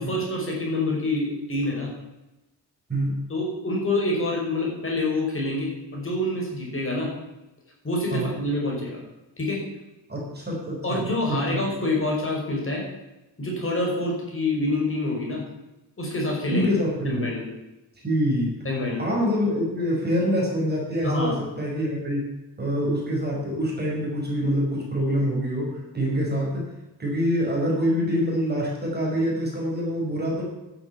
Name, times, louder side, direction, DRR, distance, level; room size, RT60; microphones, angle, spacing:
voice 1, 0.0-1.9 3.3-7.1 7.8-9.0 9.4-9.6 10.8-12.8 13.4-15.4 16.0-16.7 17.0-17.5 18.6-19.0 21.0-21.4, left 2 dB, 30° left, -2 dB, 5.5 m, -26 dB
voice 2, 10.1-11.4 16.5-17.3 18.0-18.5 19.0-22.3 22.6-26.7 27.0-30.4, equal, 25° right, -2 dB, 5.8 m, -25 dB
11.5 x 10.5 x 8.6 m, 1.0 s
wide cardioid pair, 130°, 41 cm